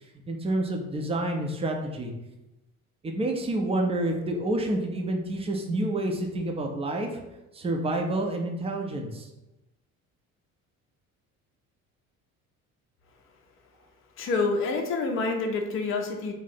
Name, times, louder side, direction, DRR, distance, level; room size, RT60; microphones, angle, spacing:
voice 1, 0.3-2.1 3.0-7.2 7.5-9.3, right 1 dB, 15° right, 2 dB, 0.5 m, -28 dB
voice 2, 14.2-16.3, left 3 dB, 30° left, 3 dB, 0.6 m, -27 dB
3.2 x 2.6 x 4.1 m, 0.96 s
figure-of-eight pair, 55°, 44 cm